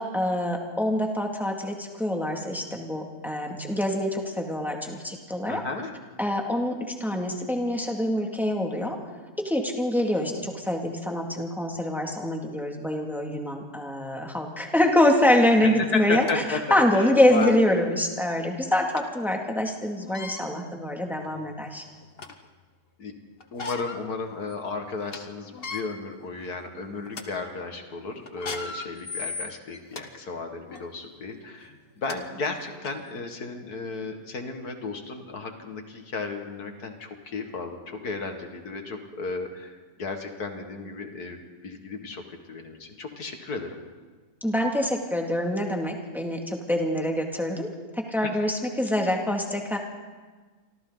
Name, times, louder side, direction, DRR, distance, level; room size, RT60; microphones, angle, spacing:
voice 1, 0.0-5.6 6.2-9.0 9.4-21.8 44.4-49.8, left 1 dB, ahead, 1 dB, 2.2 m, -25 dB
voice 2, 5.5-5.9 15.6-17.8 23.0-23.1 23.5-42.2 42.5-43.8 48.2-48.3, left 3 dB, 75° left, 4 dB, 2.4 m, -34 dB
sound 1, 15.2-15.3 16.0-16.4 17.0-17.1 17.4-17.6 19.0-19.1 20.0-20.4 21.2-21.3 21.8-22.5 23.4-24.0 24.5-24.6 24.9-25.2 25.5-25.8 26.5-26.7 27.1-27.2 28.3-30.0 30.7-30.9 31.7-31.8 32.1-32.2 32.8-32.9, left 4 dB, 40° left, 1.4 m, -37 dB
28.0 x 24.5 x 4.0 m, 1.4 s
omnidirectional pair, 1.6 m